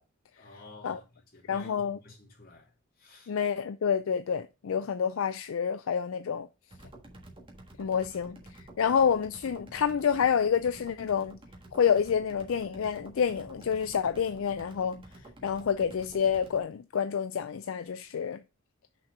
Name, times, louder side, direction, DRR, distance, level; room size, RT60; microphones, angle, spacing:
voice 1, 0.4-2.7 3.0-3.3 4.6-4.8, left 2 dB, 45° left, 2.9 m, -52 dB
voice 2, 1.5-2.0 3.3-6.5 7.8-8.4 8.8-11.4 11.7-15.0 15.4-18.4, left 7 dB, 70° left, 0.4 m, -28 dB
sound 1, 6.7-16.6, right 1 dB, 25° right, 1.4 m, -50 dB
6.2 x 4.4 x 4.8 m
head